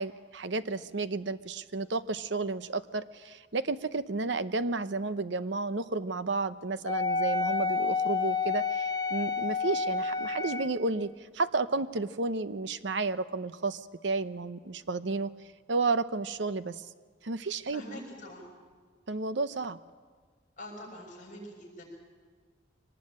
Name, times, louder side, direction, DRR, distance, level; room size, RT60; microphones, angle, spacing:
voice 1, 0.0-15.3 15.7-16.9 17.2-17.8 19.1-19.8, right 3 dB, 65° right, 13 dB, 0.8 m, -32 dB
Wind instrument woodwind instrument, 6.9-10.8, left 4 dB, 20° left, 1.2 m, -29 dB
voice 2, 17.7-18.4 20.6-21.8, left 1 dB, 45° left, 0 dB, 6.6 m, -44 dB
24.0 x 19.5 x 8.8 m, 1.5 s
head